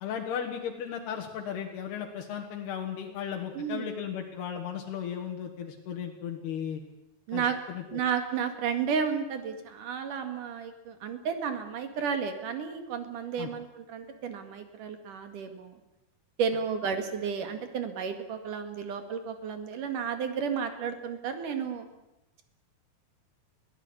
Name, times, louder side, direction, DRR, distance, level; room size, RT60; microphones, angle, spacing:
voice 1, 0.0-6.8 7.3-8.0 13.4-13.5, left 8 dB, 85° left, 1 dB, 3.8 m, -36 dB
voice 2, 3.5-3.9 7.3-7.6 7.9-15.7 16.4-21.9, right 6 dB, 60° right, 7 dB, 3.4 m, -32 dB
23.0 x 16.0 x 9.7 m, 0.92 s
omnidirectional pair, 4.5 m